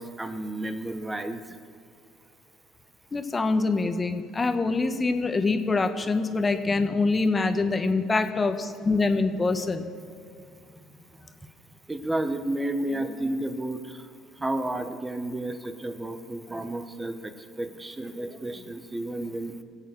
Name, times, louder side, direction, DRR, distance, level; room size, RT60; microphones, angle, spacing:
voice 1, 0.0-1.6 8.4-8.5 11.4-11.5 11.9-14.1 14.3-19.6, right 1 dB, 15° right, 8 dB, 1.2 m, -32 dB
voice 2, 3.1-9.9, left 3 dB, 30° left, 8 dB, 1.2 m, -25 dB
20.0 x 8.2 x 6.4 m, 2.4 s
supercardioid pair, 70°, 0 cm